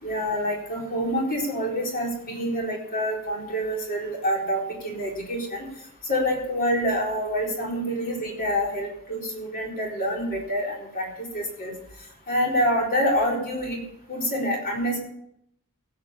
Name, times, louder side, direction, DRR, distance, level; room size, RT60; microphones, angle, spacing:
voice 1, 0.0-5.7 6.0-11.1 11.3-11.7 12.3-13.8 14.1-15.0, equal, 40° left, -1 dB, 4.1 m, -27 dB
16.0 x 8.2 x 6.9 m, 0.76 s
head